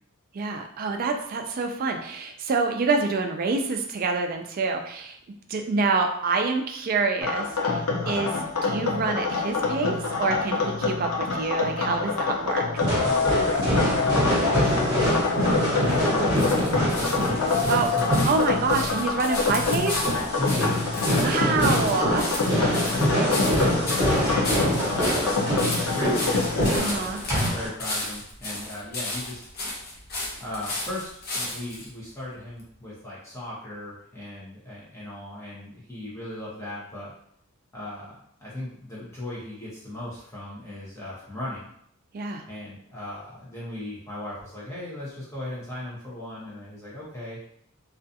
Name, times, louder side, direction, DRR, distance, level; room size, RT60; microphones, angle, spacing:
voice 1, 0.3-5.2 5.5-8.3 8.6-12.8 17.7-17.9 18.3-20.0 21.2-22.2 22.6-23.0 26.7-27.2 42.1-42.4, right 4 dB, 40° right, 4 dB, 0.3 m, -27 dB
sound 1, 7.2-26.8, left 4 dB, 80° left, 0.5 m, -26 dB
sound 2, 12.8-27.7, equal, 15° right, 1.1 m, -25 dB
voice 2, 13.0-17.3 17.9-18.2 20.4-21.5 22.9-25.5 25.8-26.5 26.7-27.1 27.4-29.4 30.4-37.1 37.7-41.7 42.5-47.4, left 1 dB, 15° left, -8 dB, 0.7 m, -36 dB
sound 3, 15.3-31.9 32.6-32.7, left 2 dB, 45° left, 0.7 m, -34 dB
2.4 x 2.3 x 2.6 m, 0.69 s
head